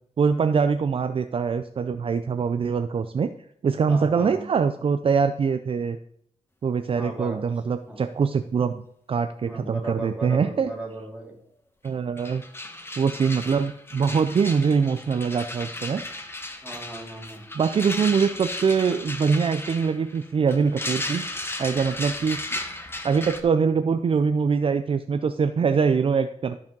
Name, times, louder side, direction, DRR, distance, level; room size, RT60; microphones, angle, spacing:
voice 1, 0.2-3.3 3.6-6.0 6.6-10.7 11.8-12.4 13.0-16.0 17.5-21.3 21.6-22.6 23.0-26.6, right 6 dB, 45° right, 10 dB, 0.5 m, -23 dB
voice 2, 3.9-4.5 6.9-7.4 7.9-8.1 9.4-11.4 16.6-17.4, right 2 dB, 10° right, 0 dB, 2.9 m, -36 dB
sound 1, 11.8-11.9 12.2-23.4, left 2 dB, 20° left, 1.2 m, -35 dB
13.0 x 4.9 x 5.4 m, 0.68 s
cardioid pair, 100°, 13 cm